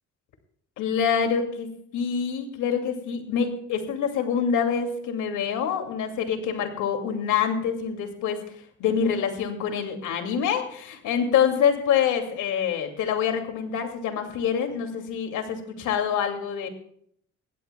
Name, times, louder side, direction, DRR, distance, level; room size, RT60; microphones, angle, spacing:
voice 1, 0.8-1.7 1.9-8.4 8.8-16.7, left 7 dB, 90° left, 5 dB, 2.5 m, -26 dB
21.0 x 16.5 x 2.3 m, 0.66 s
cardioid pair, 90°, 30 cm